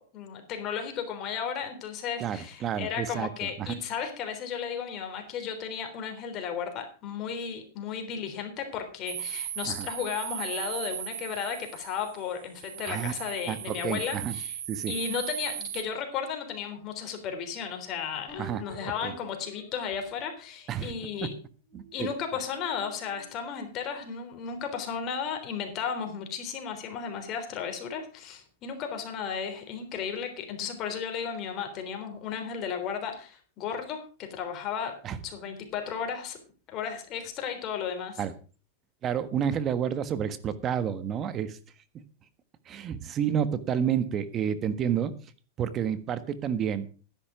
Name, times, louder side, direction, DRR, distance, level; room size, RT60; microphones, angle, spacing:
voice 1, 0.1-14.6 14.9-21.4 21.9-36.4 36.7-38.2, left 7 dB, 40° left, 5 dB, 3.5 m, -34 dB
voice 2, 2.2-3.7 9.7-9.9 12.9-13.1 13.5-14.3 14.7-14.9 18.4-19.1 20.7-20.9 21.2-21.3 21.7-22.1 35.0-35.2 38.2-38.3 39.0-41.6 41.9-42.0 42.7-45.1 45.6-46.9, right 8 dB, 30° right, 13 dB, 1.4 m, -30 dB
sound 1, 9.1-15.8, right 11 dB, 75° right, 1.6 m, -37 dB
sound 2, 18.3-21.0 21.5-24.0, left 3 dB, 20° left, 4.3 m, -50 dB
12.0 x 10.5 x 5.0 m, 0.37 s
hypercardioid pair, 125°, 0 cm